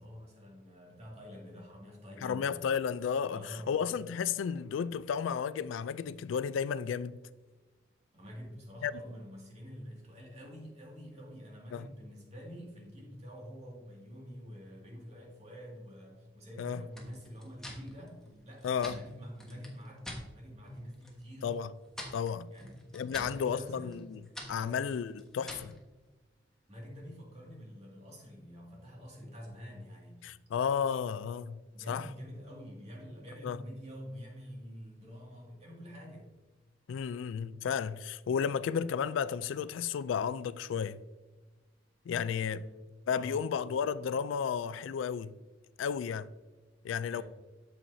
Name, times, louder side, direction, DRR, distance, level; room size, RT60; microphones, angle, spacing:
voice 1, 0.0-2.6 3.3-3.8 8.1-21.5 22.5-24.1 24.5-24.9 26.7-30.3 31.7-36.3 42.1-42.9 43.1-43.5 47.1-47.2, equal, 35° right, 2.2 m, -47 dB
voice 2, 2.2-7.2 8.8-8.9 11.7-11.9 16.6-16.8 18.6-19.0 21.4-21.7 22.1-22.5 22.9-24.2 24.5-25.8 30.2-31.6 31.9-32.1 33.4-33.6 36.9-41.0 42.1-42.6 43.1-45.3 45.8-46.3 46.8-47.2, left 7 dB, 80° left, 0.3 m, -33 dB
sound 1, 16.9-20.3 20.6-21.2 21.5-25.8, equal, 5° left, 1.3 m, -47 dB
8.6 x 7.1 x 2.7 m
head